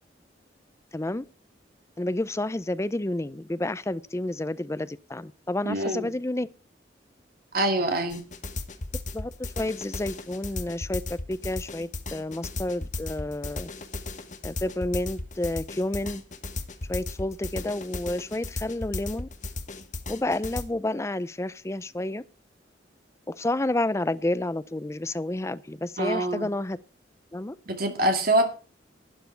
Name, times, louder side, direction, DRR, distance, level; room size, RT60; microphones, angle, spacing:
voice 1, 0.9-1.2 2.0-6.5 9.1-13.7 14.4-16.2 16.9-19.3 20.1-22.2 23.3-26.8 27.3-27.6, left 1 dB, 15° left, 0.4 m, -30 dB
voice 2, 5.6-6.1 7.5-8.2 26.0-26.5 27.7-28.5, right 1 dB, 50° right, 2.3 m, -25 dB
sound 1, 8.1-20.6, left 2 dB, 40° left, 1.3 m, -35 dB
12.5 x 9.2 x 4.4 m
head